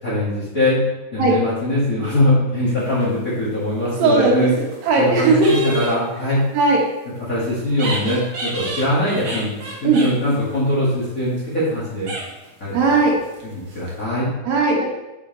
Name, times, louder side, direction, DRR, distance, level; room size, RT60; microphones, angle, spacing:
voice 1, 0.0-0.8 1.1-4.5 5.0-6.4 7.3-9.5 9.8-12.1 12.6-12.7 13.7-14.3, left 1 dB, 35° left, -7 dB, 1.5 m, -21 dB
sound 1, 2.8-3.6 4.3-5.0 5.4-6.0 7.7-11.7 12.1-12.6 13.2-14.0, right 2 dB, 65° right, 1.2 m, -32 dB
voice 2, 3.9-4.5 4.8-5.6 6.5-6.8 9.8-10.0 12.7-13.2 14.4-14.8, right 3 dB, 80° right, -1 dB, 3.0 m, -16 dB
7.2 x 4.9 x 3.9 m, 1.0 s
omnidirectional pair, 4.0 m